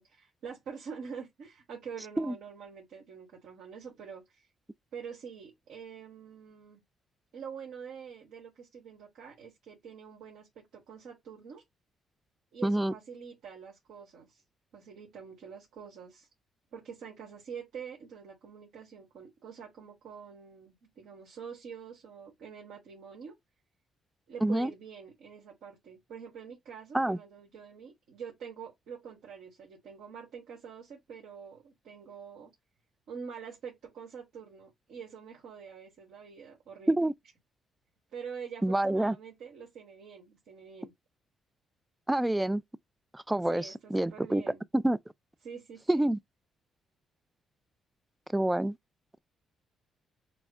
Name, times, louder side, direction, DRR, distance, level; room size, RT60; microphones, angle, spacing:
voice 1, 0.0-4.5 4.9-6.8 7.3-11.6 12.5-14.4 14.7-16.3 16.7-23.3 24.3-32.5 33.1-37.0 38.1-40.9 43.4-44.6 45.4-46.1, right 6 dB, 80° right, 1.6 m, -46 dB
voice 2, 12.6-12.9 24.4-24.7 26.9-27.2 36.9-37.1 38.6-39.2 42.1-42.6 43.1-44.4 44.7-45.0 45.9-46.2 48.3-48.8, right 1 dB, 10° right, 0.3 m, -27 dB
5.9 x 2.1 x 3.5 m
cardioid pair, 90°, 0 cm